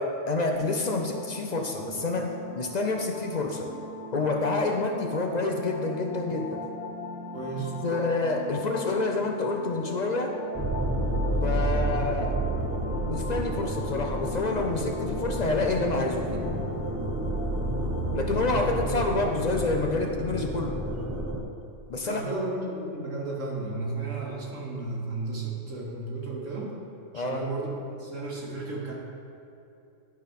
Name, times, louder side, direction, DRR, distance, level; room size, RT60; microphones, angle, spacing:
voice 1, 0.0-3.7 4.1-6.6 7.8-10.4 11.4-12.3 13.1-16.5 18.1-20.7 21.9-22.2 27.1-27.4, left 3 dB, 50° left, 3 dB, 0.5 m, -28 dB
sound 1, 0.5-19.7, left 1 dB, 65° left, 1.6 m, -40 dB
voice 2, 7.3-7.7 18.4-19.0 20.9-21.0 22.0-26.8 27.1-28.9, right 3 dB, 90° right, -4 dB, 2.0 m, -34 dB
sound 2, 10.6-21.4, right 1 dB, 20° right, 0.4 m, -30 dB
11.0 x 4.3 x 5.2 m, 2.7 s
omnidirectional pair, 1.3 m